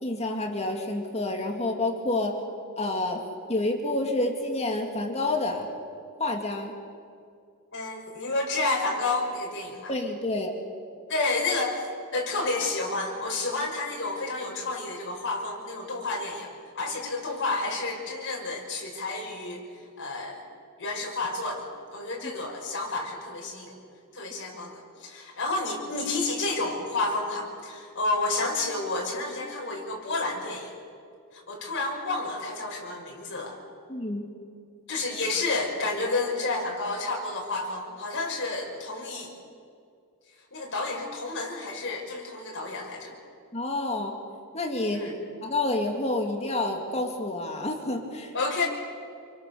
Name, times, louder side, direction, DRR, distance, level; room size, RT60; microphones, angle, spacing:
voice 1, 0.0-2.4 2.8-3.2 3.5-5.7 6.2-6.7 9.9-10.5 33.9-34.2 43.5-44.2 44.5-45.1 45.4-48.3, left 2 dB, 30° left, 3 dB, 2.4 m, -28 dB
voice 2, 7.7-9.9 11.1-11.9 12.1-19.6 20.0-20.4 20.8-23.8 24.1-30.7 31.3-33.6 34.9-39.3 40.5-43.1 44.9-45.1 48.3-48.7, left 3 dB, 55° left, -1 dB, 6.3 m, -30 dB
28.0 x 24.0 x 7.0 m, 2.4 s
head